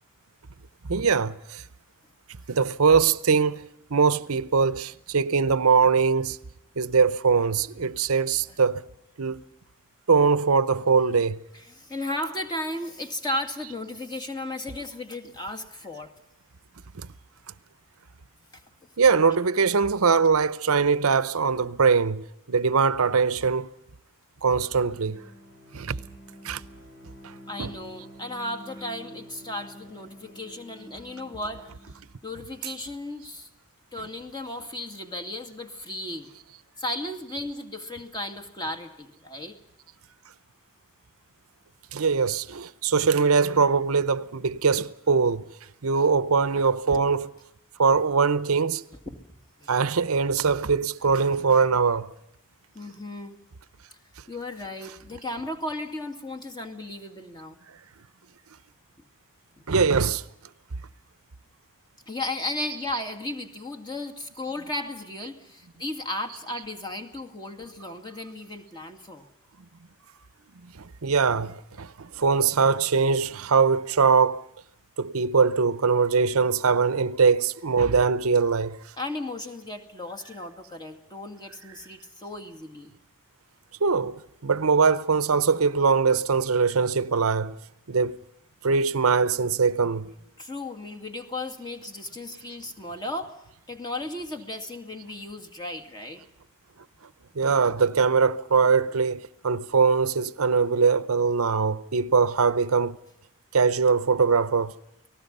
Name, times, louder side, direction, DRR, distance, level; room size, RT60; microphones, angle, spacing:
voice 1, 0.8-1.6 2.5-3.7 3.9-6.4 6.8-8.8 9.2-9.4 10.1-11.4 13.6-13.7 17.0-17.1 19.0-23.7 24.4-25.3 25.7-25.9 26.4-26.6 27.6-27.7 32.6-32.7 34.0-34.1 41.9-45.4 45.8-47.3 47.8-48.8 49.7-52.1 59.7-60.2 71.0-74.4 75.0-78.8 83.8-87.6 87.9-88.2 88.6-90.1 97.4-103.0 103.5-104.7, right 5 dB, 70° right, 0.8 m, -22 dB
voice 2, 11.5-16.1 27.5-31.6 32.2-33.5 33.9-36.3 36.8-39.6 46.9-47.0 49.1-49.2 49.6-49.7 52.7-53.4 54.3-57.6 59.6-59.7 62.1-69.3 79.0-82.9 90.4-93.3 93.7-96.2, left 1 dB, 20° left, 2.2 m, -35 dB
Bowed string instrument, 24.4-32.1, equal, 55° left, 6.3 m, -48 dB
29.5 x 19.5 x 5.4 m
head